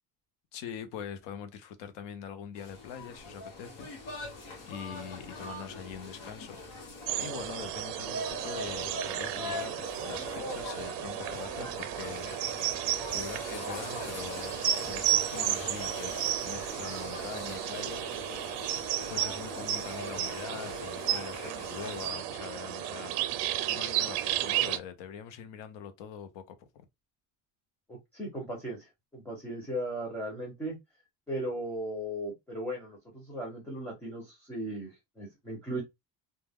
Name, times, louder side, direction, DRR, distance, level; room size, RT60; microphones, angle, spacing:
voice 1, 0.5-3.9 4.7-6.6 7.2-12.3 12.9-16.1 16.4-18.0 19.1-23.2 23.7-26.8, left 8 dB, 80° left, 0.7 m, -43 dB
sound 1, 2.6-22.1, left 2 dB, 50° left, 1.0 m, -42 dB
sound 2, 7.1-24.8, right 12 dB, 75° right, 0.5 m, -33 dB
voice 2, 27.9-30.8 31.3-35.8, right 1 dB, 5° left, 0.5 m, -37 dB
2.2 x 2.1 x 3.4 m
cardioid pair, 175°, 42 cm